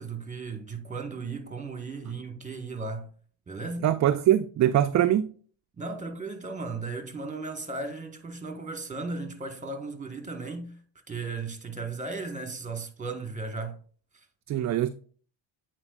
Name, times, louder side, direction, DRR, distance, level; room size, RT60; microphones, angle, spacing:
voice 1, 0.0-3.1 3.5-3.9 5.8-10.8 11.1-13.8, right 3 dB, 15° right, 1.4 m, -36 dB
voice 2, 3.8-5.3 14.5-14.9, right 12 dB, 40° right, 0.4 m, -22 dB
8.7 x 4.5 x 2.4 m
supercardioid pair, 70°, 47 cm